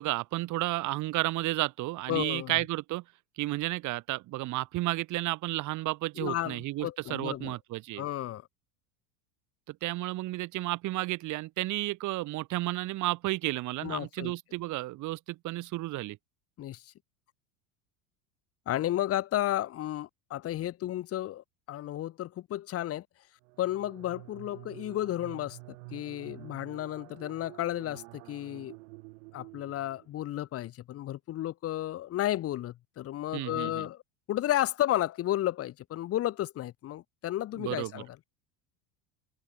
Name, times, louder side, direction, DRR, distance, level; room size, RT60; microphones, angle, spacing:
voice 1, 0.0-3.0 3.4-8.0 9.7-16.2 33.3-33.9 37.6-38.0, right 18 dB, 45° right, 2.2 m, -32 dB
voice 2, 2.1-2.5 6.2-7.6 8.0-8.4 13.8-14.3 16.6-16.8 18.7-23.0 23.6-25.6 25.9-28.8 29.3-34.0 34.3-38.1, left 13 dB, 35° left, 1.4 m, -32 dB
sound 1, 23.4-30.3, right 27 dB, 80° right, 5.7 m, -49 dB
cardioid pair, 150°, 41 cm